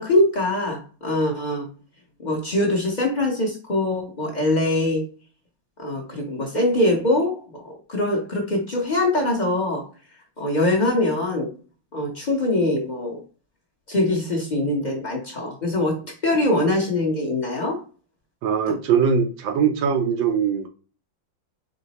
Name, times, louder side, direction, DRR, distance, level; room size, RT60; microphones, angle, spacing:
voice 1, 0.0-1.7 2.2-5.0 5.8-9.8 10.4-11.5 11.9-13.2 13.9-17.8 18.7-18.8, left 1 dB, 30° left, 0.8 m, -23 dB
voice 2, 18.4-20.7, right 7 dB, 80° right, 1.5 m, -21 dB
5.0 x 2.2 x 4.1 m
omnidirectional pair, 2.1 m